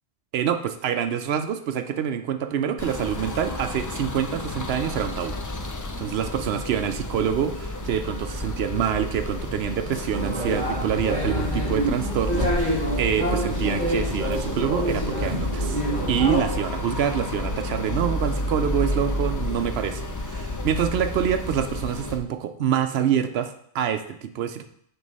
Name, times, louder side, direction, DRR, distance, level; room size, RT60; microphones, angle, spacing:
voice 1, 0.3-5.3 6.0-15.8 16.1-24.7, right 9 dB, 75° right, 9 dB, 0.8 m, -26 dB
sound 1, 2.8-22.2, left 1 dB, 30° left, 0.3 m, -30 dB
sound 2, 10.1-16.4, equal, 45° right, 1.9 m, -27 dB
7.9 x 3.1 x 5.4 m, 0.68 s
omnidirectional pair, 1.1 m